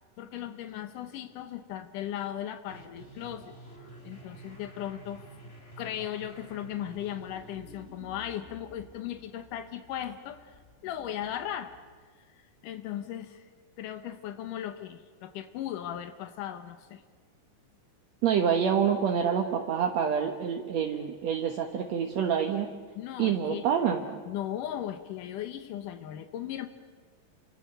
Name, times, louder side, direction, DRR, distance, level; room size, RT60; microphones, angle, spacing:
voice 1, 0.2-3.5 4.0-5.2 5.8-11.7 12.2-13.5 13.8-17.0 23.0-23.7 24.3-26.7, left 11 dB, 85° left, 8 dB, 2.7 m, -37 dB
sound 1, 2.7-11.8, right 1 dB, 20° left, 2.9 m, -50 dB
voice 2, 18.2-22.7 23.2-24.2, right 7 dB, 65° right, 3 dB, 2.3 m, -27 dB
30.0 x 26.0 x 6.8 m, 1.5 s
omnidirectional pair, 3.6 m